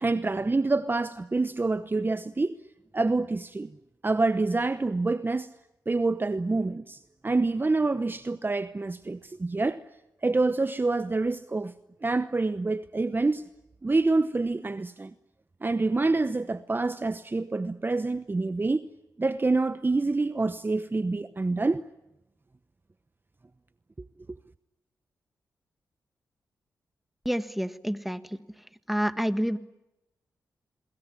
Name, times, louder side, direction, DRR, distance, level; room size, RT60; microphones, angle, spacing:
voice 1, 0.0-2.6 2.9-3.7 4.0-5.5 5.9-9.8 10.2-11.7 12.0-13.5 13.8-15.1 15.6-18.9 19.2-21.8, right 3 dB, 30° right, 0.9 m, -27 dB
voice 2, 27.2-28.2 28.9-29.6, equal, ahead, 1.6 m, -28 dB
28.0 x 21.5 x 9.9 m
supercardioid pair, 45°, 7 cm